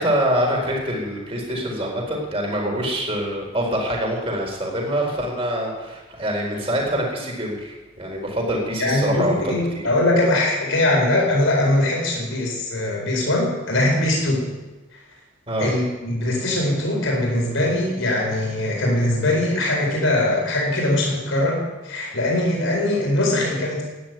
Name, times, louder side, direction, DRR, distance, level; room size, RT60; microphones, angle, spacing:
voice 1, 0.0-9.8 15.5-15.7, equal, 30° right, 0 dB, 4.3 m, -25 dB
voice 2, 8.8-14.5 15.6-23.8, left 1 dB, 75° left, -1 dB, 4.5 m, -21 dB
14.0 x 10.0 x 9.4 m, 1.2 s
head